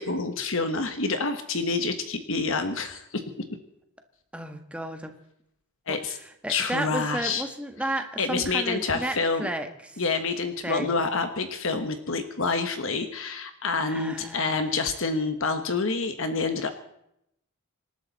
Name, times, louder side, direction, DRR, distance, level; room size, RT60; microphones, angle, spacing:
voice 1, 0.0-3.2 5.9-6.2 6.5-7.4 8.2-9.5 10.0-16.7, left 4 dB, 60° left, 8 dB, 1.2 m, -27 dB
voice 2, 4.3-5.1 5.9-6.0 6.4-10.0 10.6-11.0 13.9-14.6, right 1 dB, 5° right, 5 dB, 1.5 m, -33 dB
26.5 x 12.0 x 4.1 m, 0.78 s
head